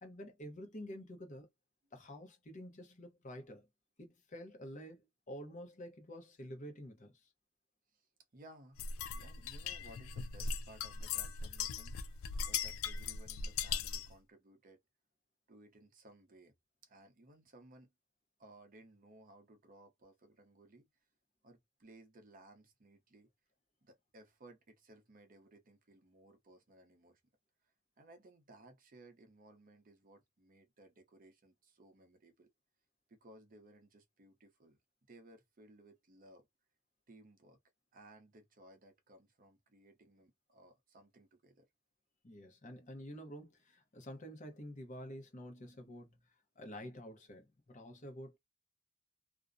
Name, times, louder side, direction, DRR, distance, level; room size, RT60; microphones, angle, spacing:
voice 1, 0.0-1.5 1.9-3.7 4.0-7.1 42.2-46.2 46.6-48.4, equal, 35° left, 0.7 m, -49 dB
voice 2, 8.3-8.9 9.1-14.8 15.5-16.5 16.8-17.9 18.4-20.9 21.4-23.3 23.8-27.2 28.0-32.5 33.1-34.8 35.1-36.5 37.1-37.6 37.9-41.7, right 1 dB, 40° right, 0.6 m, -60 dB
sound 1, 8.8-14.1, left 6 dB, 80° left, 0.3 m, -39 dB
2.4 x 2.1 x 2.5 m
head